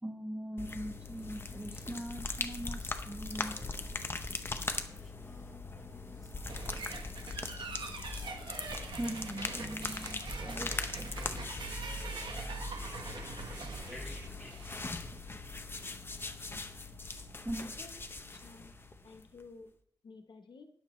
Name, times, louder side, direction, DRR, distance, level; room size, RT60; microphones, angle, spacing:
voice 1, 0.0-3.6 8.9-11.1 17.4-17.7, right 1 dB, 15° right, 0 dB, 1.3 m, -41 dB
sound 1, 0.6-19.5, left 3 dB, 30° left, 0.8 m, -41 dB
voice 2, 3.3-7.2 11.1-15.2, left 1 dB, 5° left, -4 dB, 5.0 m, -56 dB
sound 2, 6.5-14.8, right 4 dB, 90° right, 1.2 m, -45 dB
sound 3, 8.9-14.3, right 2 dB, 45° right, 1.6 m, -44 dB
voice 3, 18.3-18.7 19.0-19.7 20.0-20.7, left 4 dB, 85° left, 6 dB, 0.9 m, -52 dB
12.5 x 10.0 x 3.1 m, 0.66 s
wide cardioid pair, 110°, 8 cm